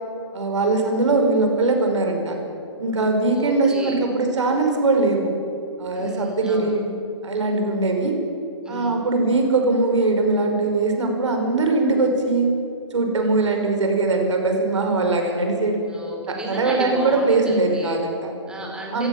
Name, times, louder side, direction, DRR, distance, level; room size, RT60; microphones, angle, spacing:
voice 1, 0.3-2.4 2.8-5.3 5.8-6.9 7.2-8.2 8.7-12.5 12.9-15.8 16.5-18.3 18.9-19.1, right 3 dB, 80° right, 3 dB, 5.6 m, -21 dB
voice 2, 3.3-4.0 5.9-6.8 8.6-9.0 15.9-18.0 18.5-19.1, right 1 dB, 5° right, -1 dB, 4.4 m, -32 dB
25.5 x 16.0 x 7.5 m, 2.8 s
hypercardioid pair, 145°, 15 cm